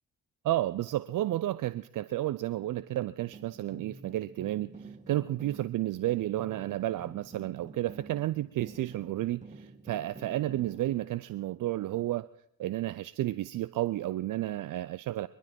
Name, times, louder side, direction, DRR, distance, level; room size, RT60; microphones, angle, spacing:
voice 1, 0.4-12.3 12.6-15.3, right 14 dB, 45° right, 15 dB, 0.5 m, -32 dB
sound 1, 2.9-11.1, right 3 dB, 15° right, 1.3 m, -49 dB
22.5 x 12.0 x 4.4 m, 0.70 s
figure-of-eight pair, 40°, 47 cm